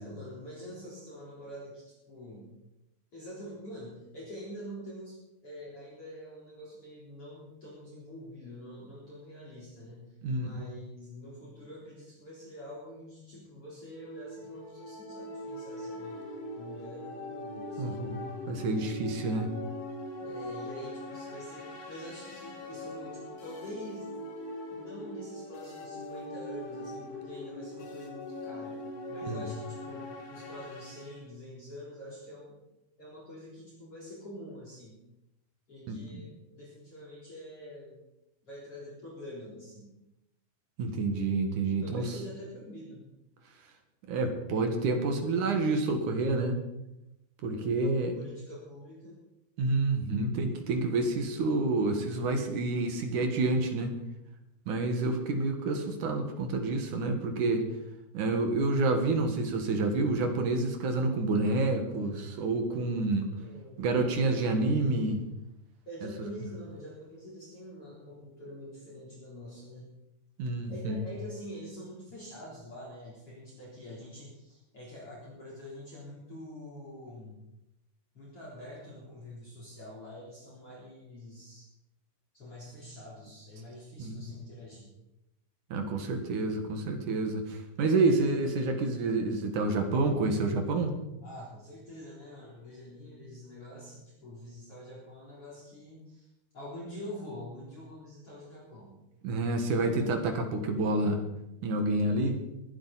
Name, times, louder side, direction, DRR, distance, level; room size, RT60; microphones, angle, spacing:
voice 1, 0.0-2.5 3.1-16.2 16.6-18.0 20.2-24.2 24.7-28.8 29.1-32.6 33.0-35.0 35.7-38.0 38.5-39.9 41.8-43.1 47.6-49.2 63.1-63.9 64.2-64.6 65.9-69.9 70.6-77.4 78.1-81.6 82.3-84.9 91.2-96.3 96.5-98.9, equal, 35° left, -5 dB, 4.4 m, -46 dB
sound 1, 13.9-31.2, left 1 dB, 85° left, 5.1 m, -41 dB
voice 2, 17.8-19.5 29.2-29.4 35.9-36.2 40.8-42.0 44.1-46.6 47.4-48.1 49.6-53.9 54.7-57.6 58.1-63.2 63.8-65.2 70.4-71.0 84.0-84.3 85.7-91.0 99.2-101.2 101.6-102.4, right 2 dB, 55° right, 5 dB, 2.6 m, -28 dB
21.5 x 11.5 x 4.2 m, 0.90 s
omnidirectional pair, 5.0 m